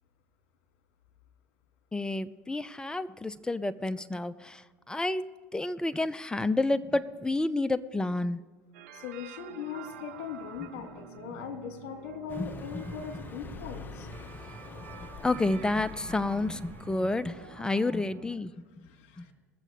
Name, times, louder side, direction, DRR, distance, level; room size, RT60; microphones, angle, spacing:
voice 1, 1.9-5.3 5.5-8.4 11.3-11.4 12.4-12.8 14.8-18.9 19.2-19.3, left 2 dB, 10° left, 14 dB, 0.6 m, -30 dB
sound 1, 8.7-18.4, right 8 dB, 80° right, 1.1 m, -49 dB
voice 2, 8.9-14.1 18.8-19.3, left 7 dB, 70° left, 5 dB, 2.0 m, -40 dB
Car passing by, 12.3-17.8, left 4 dB, 25° left, 1.1 m, -45 dB
21.0 x 7.6 x 5.0 m, 1.3 s
hypercardioid pair, 75°, 7 cm